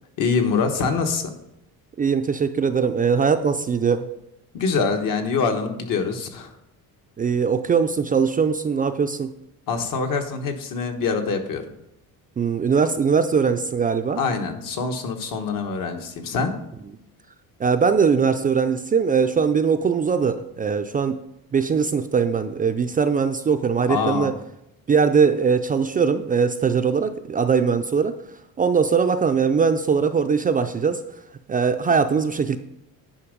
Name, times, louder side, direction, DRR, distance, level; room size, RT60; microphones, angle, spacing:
voice 1, 0.2-1.3 4.5-6.6 9.7-11.6 14.2-16.5 23.9-24.3, left 5 dB, 65° left, 5 dB, 1.3 m, -24 dB
voice 2, 2.0-4.1 7.2-9.3 12.4-14.2 17.6-21.2 21.5-24.3 24.9-28.2 28.6-31.0 31.5-32.6, right 6 dB, 25° right, 7 dB, 0.4 m, -21 dB
9.9 x 5.3 x 5.1 m, 0.81 s
cardioid pair, 135°, 36 cm